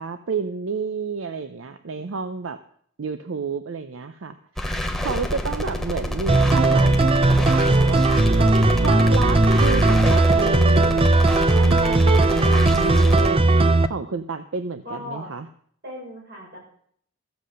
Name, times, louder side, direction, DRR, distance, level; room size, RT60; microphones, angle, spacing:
voice 1, 0.0-2.6 3.0-4.4 5.0-8.0 8.4-11.1 11.5-15.5, right 4 dB, 80° right, 11 dB, 0.6 m, -30 dB
sound 1, 4.6-13.3, equal, ahead, 1.0 m, -28 dB
voice 2, 4.6-5.5 14.8-15.3 15.8-16.6, left 1 dB, 55° right, -3 dB, 6.6 m, -39 dB
sound 2, 6.3-13.9, right 2 dB, 30° right, 0.6 m, -17 dB
14.5 x 7.8 x 6.4 m, 0.63 s
head